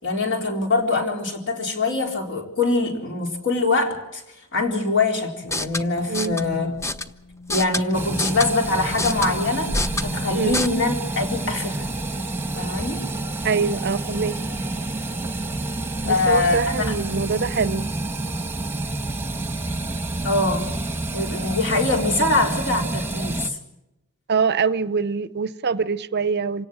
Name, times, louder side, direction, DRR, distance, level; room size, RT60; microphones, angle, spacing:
voice 1, 0.0-4.2 4.5-6.7 7.5-9.7 10.0-11.9 12.6-13.0 16.1-16.9 20.2-20.7 21.1-23.6, left 3 dB, 60° left, 4.1 m, -23 dB
sound 1, 5.4-10.7, left 2 dB, 15° left, 0.8 m, -29 dB
voice 2, 6.1-6.4 10.3-10.6 13.4-14.4 16.0-17.9 24.3-26.6, right 5 dB, 50° right, 0.7 m, -24 dB
sound 2, 7.9-23.5, right 2 dB, 10° right, 1.2 m, -29 dB
27.0 x 17.5 x 6.4 m
head